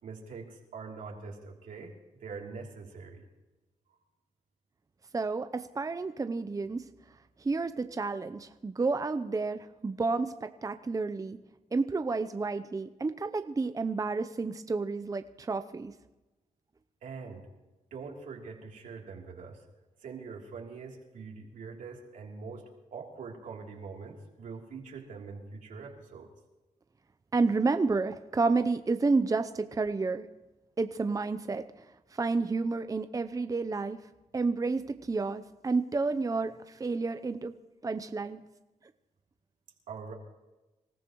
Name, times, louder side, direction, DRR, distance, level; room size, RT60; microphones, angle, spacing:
voice 1, 0.0-3.2 17.0-17.5 17.9-19.6 20.0-26.3 39.9-40.1, right 4 dB, 75° right, 0 dB, 3.2 m, -43 dB
voice 2, 5.1-6.8 7.4-11.4 11.7-15.9 27.3-30.2 30.8-34.0 34.3-37.5 37.8-38.4, right 3 dB, 25° right, 9 dB, 0.7 m, -30 dB
26.5 x 14.5 x 3.1 m, 1.1 s
cardioid pair, 65°, 13 cm